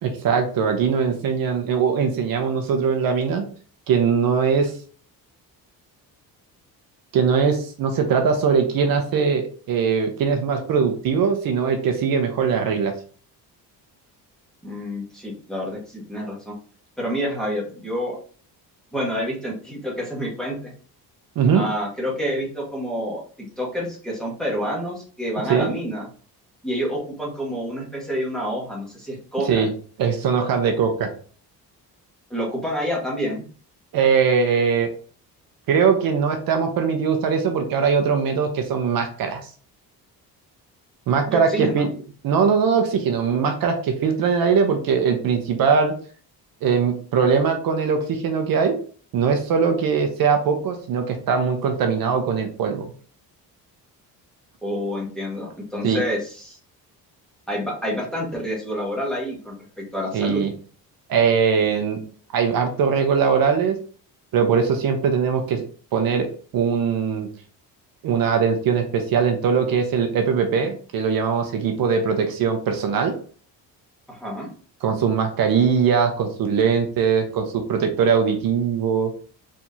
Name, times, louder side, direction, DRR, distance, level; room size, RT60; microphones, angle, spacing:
voice 1, 0.0-3.4 3.9-4.7 7.1-12.9 21.4-21.6 25.5-25.7 29.4-29.7 30.0-31.1 33.9-34.9 35.7-39.5 41.1-41.9 42.2-45.9 46.6-48.7 49.1-52.9 55.8-56.0 60.1-60.5 61.1-62.0 62.3-63.8 64.3-65.6 65.9-66.3 66.5-67.3 68.0-73.1 74.8-79.1, right 6 dB, 60° right, 5 dB, 0.9 m, -21 dB
voice 2, 14.6-16.5 17.0-18.2 18.9-20.7 21.5-26.0 26.6-29.7 32.3-33.5 41.3-41.9 54.6-56.6 57.5-60.4 74.1-74.5, equal, ahead, -4 dB, 1.5 m, -28 dB
4.5 x 3.6 x 2.8 m, 0.42 s
cardioid pair, 160°, 38 cm